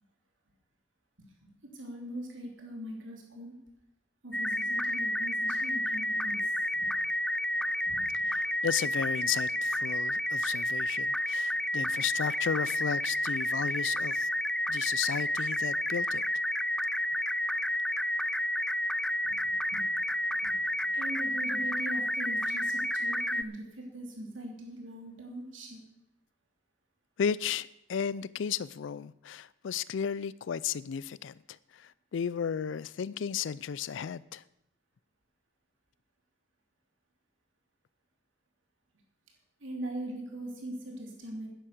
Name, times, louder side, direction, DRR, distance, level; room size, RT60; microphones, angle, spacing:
voice 1, 1.4-3.6 4.2-6.9 7.9-8.3 19.2-19.8 20.4-25.8 39.6-41.5, right 1 dB, 80° right, 3.3 m, -41 dB
sound 1, 4.3-23.4, left 1 dB, 5° left, 0.4 m, -30 dB
voice 2, 8.1-14.3 14.7-16.2 27.2-34.4, left 7 dB, 70° left, 0.4 m, -34 dB
10.0 x 10.0 x 7.8 m
head